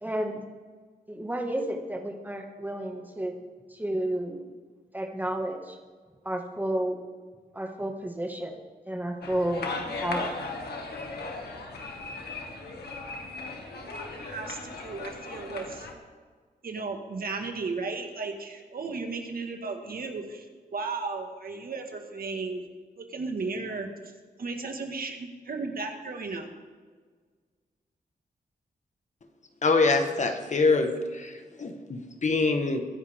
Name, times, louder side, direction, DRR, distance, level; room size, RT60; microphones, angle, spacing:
voice 1, 0.0-0.4 1.1-3.3 3.7-4.5 4.9-5.8 6.3-7.0 7.5-8.5 8.9-9.7 10.0-10.3, right 1 dB, 10° right, 2 dB, 1.9 m, -31 dB
sound 1, 9.2-15.9, left 3 dB, 90° left, 1.9 m, -37 dB
voice 2, 13.7-15.9 16.6-20.4 20.7-22.6 23.0-23.9 24.4-26.5, right 4 dB, 65° right, 3 dB, 1.8 m, -35 dB
voice 3, 29.6-32.8, left 3 dB, 45° left, 6 dB, 1.4 m, -25 dB
22.5 x 10.5 x 3.6 m, 1.5 s
wide cardioid pair, 105°, 16 cm